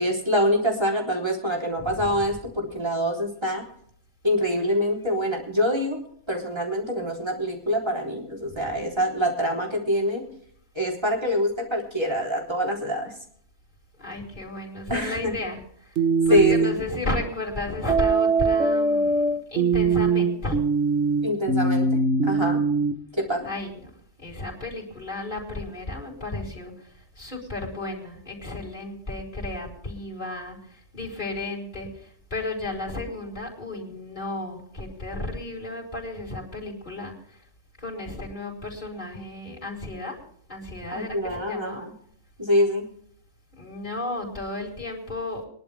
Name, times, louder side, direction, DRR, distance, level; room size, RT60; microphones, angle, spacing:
voice 1, 0.0-3.6 4.2-6.0 6.3-10.2 10.8-13.1 14.9-15.3 16.3-16.8 21.2-22.6 23.2-23.5 40.9-41.9 42.4-42.8, equal, 20° right, 0 dB, 3.8 m, -25 dB
voice 2, 1.8-2.1 8.5-8.6 14.0-15.9 16.3-19.2 19.5-20.6 23.4-23.9 24.2-37.4 37.8-40.2 40.5-41.8 43.6-45.4, left 2 dB, 40° left, -2 dB, 4.4 m, -33 dB
sound 1, 16.0-16.8 17.9-22.9, right 3 dB, 70° right, 1.7 m, -22 dB
22.5 x 11.5 x 3.6 m, 0.62 s
omnidirectional pair, 1.2 m